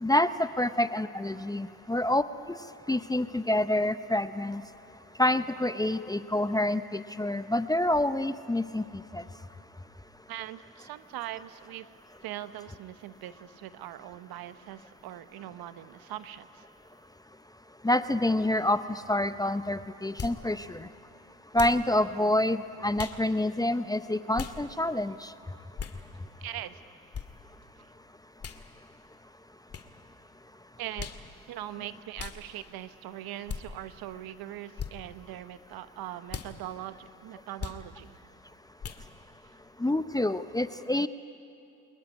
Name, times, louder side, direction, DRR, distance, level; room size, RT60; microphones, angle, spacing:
voice 1, 0.0-2.2 2.9-4.6 5.2-8.8 9.1-9.2 17.8-20.9 21.5-25.3 39.8-41.1, left 1 dB, 10° left, 12 dB, 0.8 m, -27 dB
voice 2, 10.3-11.9 12.2-16.6 26.4-26.8 30.8-31.1 31.5-38.1, right 13 dB, 65° right, 12 dB, 1.2 m, -41 dB
sound 1, 20.2-20.4 21.5-21.8 23.0-23.2 24.3-24.6 25.8-26.0 27.1-27.3 28.4-28.6 29.7-29.9 31.0-31.2 32.2-32.4 33.5-33.6 34.8-34.9 36.3-36.5 37.6-37.8 38.8-39.0, left 6 dB, 35° left, 2.0 m, -37 dB
24.0 x 20.5 x 9.8 m, 2.6 s
hypercardioid pair, 70°, 40 cm